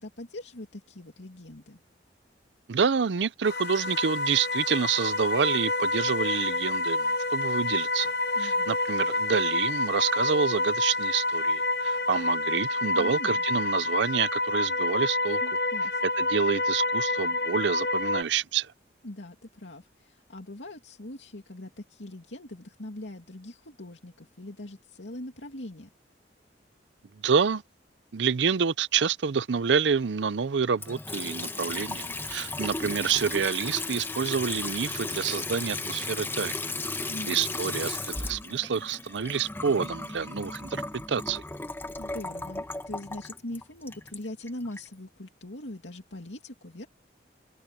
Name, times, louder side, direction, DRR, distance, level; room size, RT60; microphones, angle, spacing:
voice 1, 0.0-1.8 8.3-8.8 12.9-13.4 15.4-16.0 19.0-25.9 37.1-37.5 42.0-46.9, left 1 dB, 85° left, 2.6 m, -42 dB
voice 2, 2.7-8.1 8.4-15.4 16.2-18.7 27.2-27.6 28.1-36.6 37.3-40.8 41.1-41.4, right 6 dB, 80° right, 0.6 m, -28 dB
sound 1, 3.4-18.2, left 2 dB, 60° left, 0.9 m, -28 dB
Water tap faucet / Sink (filling or washing) / Trickle dribble, 30.8-44.9, left 2 dB, 10° left, 1.2 m, -35 dB
head